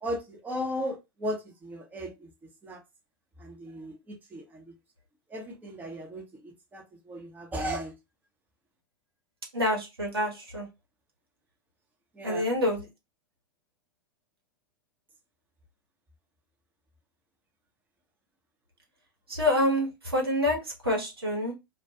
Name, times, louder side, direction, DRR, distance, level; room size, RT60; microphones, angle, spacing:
voice 1, 0.0-2.3 2.6-2.8 3.4-4.7 5.3-7.9 12.1-12.5, equal, 15° right, 0.8 m, -36 dB
voice 2, 9.5-10.7 12.2-12.9 19.3-21.5, left 1 dB, 90° right, 1.0 m, -27 dB
2.3 x 2.2 x 2.7 m
figure-of-eight pair, 95°, 12 cm